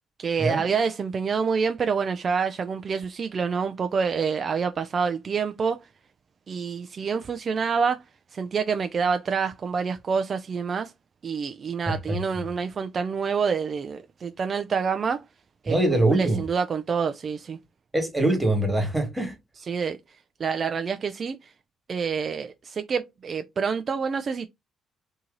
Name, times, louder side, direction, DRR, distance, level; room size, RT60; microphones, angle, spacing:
voice 1, 0.2-5.8 6.5-8.0 8.3-10.9 11.2-15.2 15.6-15.8 16.1-17.6 19.7-20.0 20.4-21.5 21.9-24.5, right 5 dB, 45° right, 0.4 m, -27 dB
voice 2, 11.9-12.2 15.7-16.4 17.9-19.3, right 1 dB, 10° right, 1.6 m, -23 dB
2.9 x 2.7 x 3.8 m
cardioid pair, 90°, 0 cm